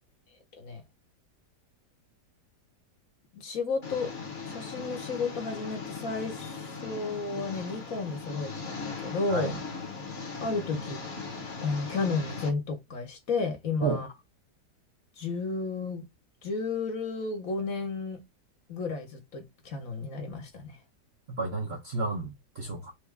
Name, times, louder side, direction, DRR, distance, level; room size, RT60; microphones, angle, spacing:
voice 1, 3.3-4.1 4.5-9.5 10.4-11.0 11.6-14.1 15.2-16.0 16.4-18.2 18.7-20.8, left 4 dB, 55° left, 1.4 m, -32 dB
Engine, 3.8-12.5, left 4 dB, 40° left, 1.4 m, -39 dB
voice 2, 21.3-22.9, right 4 dB, 50° right, 0.8 m, -31 dB
4.7 x 2.6 x 3.3 m
omnidirectional pair, 1.9 m